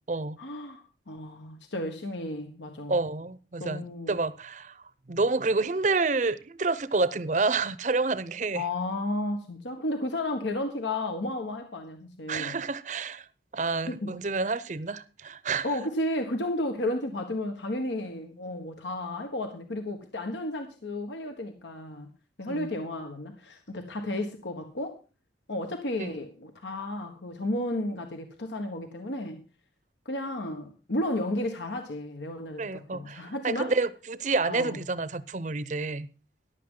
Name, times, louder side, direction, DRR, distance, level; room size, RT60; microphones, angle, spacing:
voice 1, 0.4-3.0 3.6-4.2 8.5-12.6 13.9-14.1 15.6-22.1 22.4-25.0 25.5-29.4 30.0-33.7 34.5-34.8, left 1 dB, 80° left, 1.3 m, -33 dB
voice 2, 2.9-4.8 5.1-8.6 12.3-13.2 13.5-15.7 22.5-22.7 26.0-26.1 32.6-36.1, right 3 dB, 40° right, 0.6 m, -29 dB
14.5 x 11.0 x 3.8 m
head